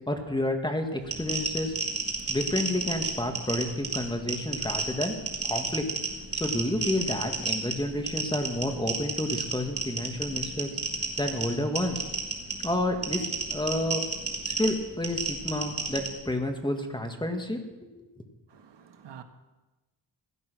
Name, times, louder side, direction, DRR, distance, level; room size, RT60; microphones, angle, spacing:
voice 1, 0.1-1.7 2.3-5.1 5.4-5.8 6.3-10.7 11.2-12.0 12.6-14.0 14.5-17.6 18.0-18.1, left 1 dB, 10° left, 1.7 m, -30 dB
sound 1, 1.0-16.1, right 3 dB, 30° right, 2.9 m, -32 dB
voice 2, 18.5-19.2, right 8 dB, 70° right, 1.5 m, -48 dB
17.0 x 12.5 x 6.2 m
wide cardioid pair, 120°, 44 cm